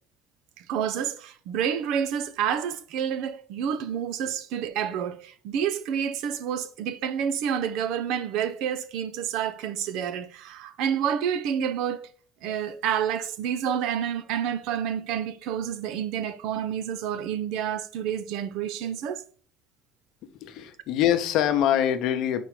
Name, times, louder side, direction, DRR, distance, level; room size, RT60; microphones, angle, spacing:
voice 1, 0.6-12.1 12.4-19.2, right 8 dB, 75° right, 0.6 m, -29 dB
voice 2, 20.4-22.4, left 10 dB, 70° left, 0.8 m, -24 dB
4.7 x 4.3 x 4.9 m
cardioid pair, 110°, 0 cm